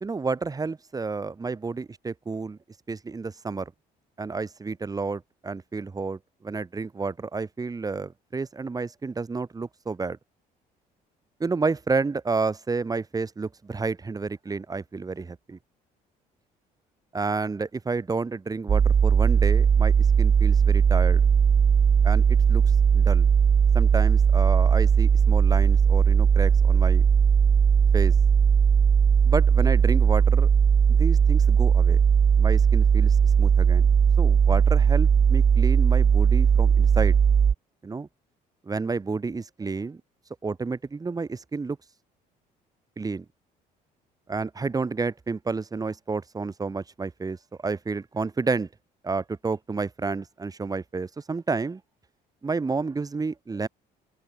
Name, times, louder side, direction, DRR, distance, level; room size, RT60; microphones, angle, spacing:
voice 1, 0.0-2.6 2.9-3.7 4.2-10.2 11.4-15.6 17.1-21.2 22.0-22.6 22.9-23.3 23.7-27.1 27.9-28.1 29.2-30.5 30.9-32.0 32.4-33.9 34.2-37.2 37.8-38.1 38.6-40.0 40.4-41.8 43.0-43.3 44.3-47.4 47.6-48.7 49.0-51.8 52.4-53.7, right 4 dB, 20° right, 1.9 m, -30 dB
sound 1, 18.7-37.5, right 7 dB, 35° right, 2.1 m, -19 dB
open air
cardioid pair, 110°, 17 cm